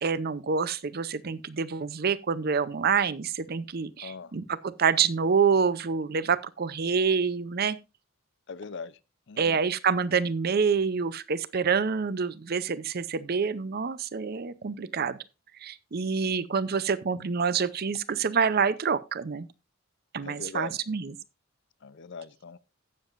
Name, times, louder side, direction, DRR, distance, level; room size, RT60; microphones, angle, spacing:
voice 1, 0.0-7.8 9.4-15.2 15.6-19.5 20.1-21.1, right 6 dB, 50° right, 0.6 m, -27 dB
voice 2, 4.0-4.3 8.5-9.0 9.3-9.6 16.2-16.3 20.2-20.7 21.8-22.6, left 5 dB, 60° left, 0.6 m, -40 dB
16.0 x 7.4 x 2.5 m
head